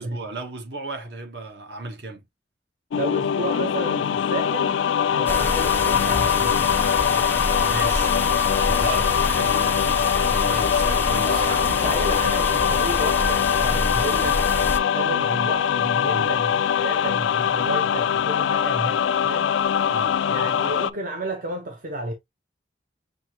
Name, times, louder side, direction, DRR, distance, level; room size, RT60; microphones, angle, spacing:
voice 1, 0.0-2.2 7.6-8.2 8.6-11.4 16.0-16.3 19.9-20.2, right 2 dB, 65° right, 1.3 m, -35 dB
sound 1, 2.9-20.9, left 8 dB, 85° left, 0.3 m, -22 dB
voice 2, 3.0-4.8 5.1-6.7 11.3-14.5 14.9-19.5 20.3-22.1, right 2 dB, 45° right, 0.7 m, -32 dB
sound 2, 5.3-14.8, left 2 dB, 10° left, 0.4 m, -27 dB
6.1 x 2.7 x 2.9 m
head